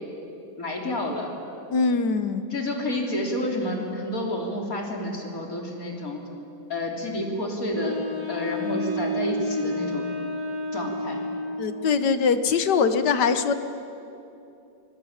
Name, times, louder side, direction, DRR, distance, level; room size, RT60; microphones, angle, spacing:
voice 1, 0.6-1.3 2.5-6.2 6.7-7.9 8.3-10.1 10.7-11.2, left 1 dB, 55° left, 0 dB, 3.8 m, -29 dB
voice 2, 1.7-2.4 11.6-13.5, left 5 dB, 85° left, 10 dB, 1.8 m, -22 dB
Wind instrument woodwind instrument, 7.7-11.8, equal, 75° right, 4.7 m, -30 dB
24.5 x 21.5 x 8.9 m, 2.8 s
omnidirectional pair, 1.8 m